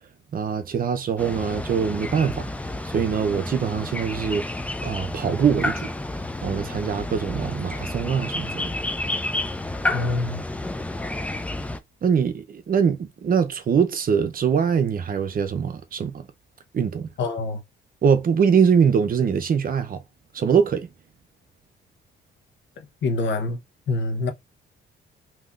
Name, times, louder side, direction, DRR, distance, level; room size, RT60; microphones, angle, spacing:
voice 1, 0.3-2.5 2.8-4.5 4.8-5.9 6.4-8.7 12.0-16.3 16.7-17.1 18.0-20.0 20.3-20.9, right 7 dB, 45° right, 0.7 m, -23 dB
sound 1, 1.2-11.8, left 2 dB, 5° left, 0.4 m, -30 dB
voice 2, 9.9-10.4 17.2-17.6 22.8-23.6 23.9-24.3, left 3 dB, 65° left, 1.0 m, -26 dB
3.5 x 2.9 x 2.4 m
cardioid pair, 90°, 20 cm